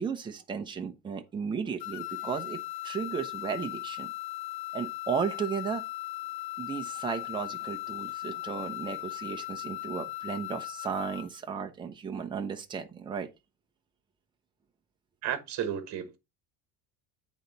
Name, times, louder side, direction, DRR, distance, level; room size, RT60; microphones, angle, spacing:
voice 1, 0.0-2.6 2.8-4.1 4.7-5.8 6.6-13.3, right 6 dB, 10° right, 0.6 m, -34 dB
sound 1, 1.8-11.4, left 18 dB, 65° left, 0.5 m, -38 dB
voice 2, 15.2-16.2, right 9 dB, 40° right, 1.3 m, -33 dB
8.5 x 4.0 x 4.1 m
cardioid pair, 175°, 44 cm